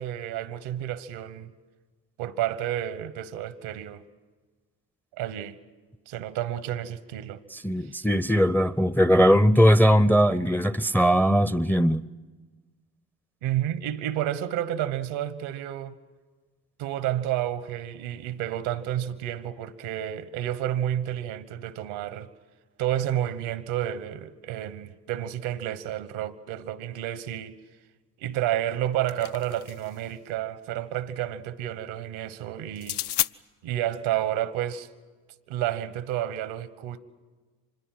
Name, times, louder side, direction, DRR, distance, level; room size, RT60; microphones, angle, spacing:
voice 1, 0.0-1.5 2.2-4.0 5.1-5.6 6.1-7.4 7.9-8.0 13.4-15.9 16.8-22.3 22.8-27.6 28.2-33.0 33.6-34.9 35.5-37.0, right 12 dB, 75° right, 1.3 m, -30 dB
voice 2, 7.5-12.0, equal, 5° left, 0.6 m, -20 dB
sound 1, 28.7-30.0 32.7-33.3, left 12 dB, 55° left, 0.7 m, -31 dB
25.5 x 21.0 x 7.6 m
hypercardioid pair, 50°, 47 cm